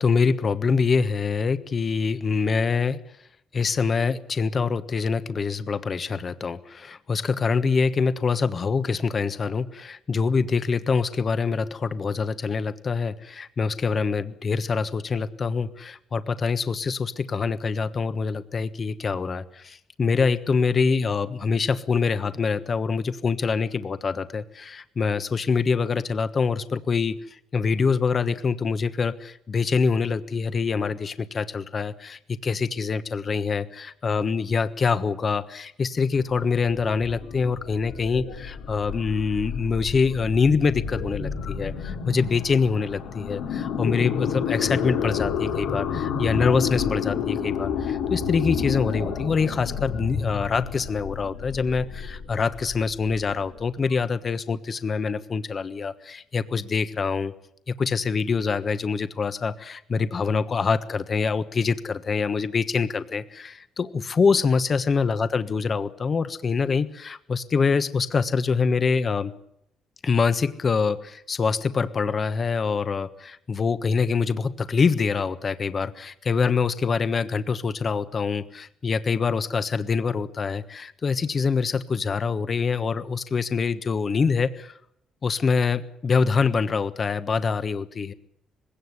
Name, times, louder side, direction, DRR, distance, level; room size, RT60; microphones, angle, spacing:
voice 1, 0.0-3.0 3.5-57.3 57.7-69.3 70.0-84.8 85.2-88.1, left 5 dB, 40° left, 12 dB, 1.3 m, -25 dB
sound 1, 36.1-53.9, left 7 dB, 90° left, 3.4 m, -30 dB
20.5 x 17.0 x 9.6 m, 0.74 s
cardioid pair, 90°, 0 cm